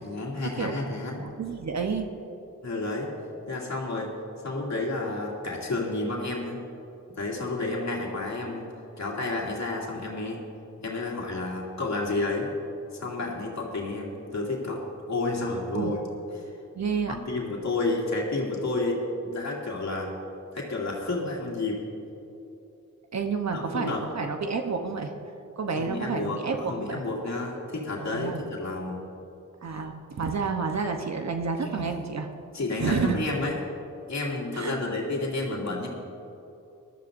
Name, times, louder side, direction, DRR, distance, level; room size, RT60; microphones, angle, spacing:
voice 1, 0.0-1.2 2.6-3.1 3.5-4.1 4.4-6.6 7.2-8.7 9.0-10.4 10.8-12.5 13.0-14.8 15.1-16.0 17.1-19.0 19.2-20.1 20.5-21.8 23.5-24.1 25.8-26.4 26.7-29.0 31.6-31.9 32.5-33.5 34.1-35.9, left 2 dB, 55° left, -3 dB, 2.5 m, -30 dB
voice 2, 1.2-2.1 15.7-15.9 16.7-17.2 23.1-25.1 25.6-27.0 28.1-28.4 29.6-32.3 32.8-33.3 34.5-34.8, right 5 dB, 55° right, 5 dB, 0.9 m, -29 dB
20.0 x 12.5 x 2.6 m, 2.9 s
cardioid pair, 80°, 33 cm